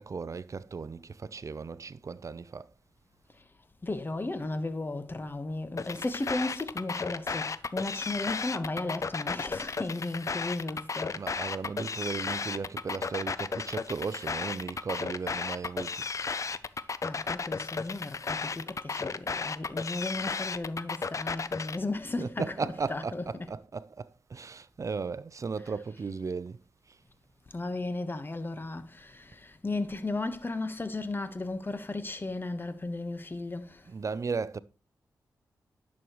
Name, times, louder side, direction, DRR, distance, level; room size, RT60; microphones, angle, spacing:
voice 1, 0.0-2.7 11.2-16.0 22.2-26.6 33.8-34.6, right 5 dB, 45° right, 0.5 m, -36 dB
voice 2, 3.8-11.2 17.0-23.5 25.6-25.9 27.5-33.9, left 2 dB, 30° left, 1.2 m, -35 dB
sound 1, 5.8-21.8, left 4 dB, 45° left, 0.5 m, -34 dB
11.0 x 6.4 x 3.1 m
cardioid pair, 50°, 7 cm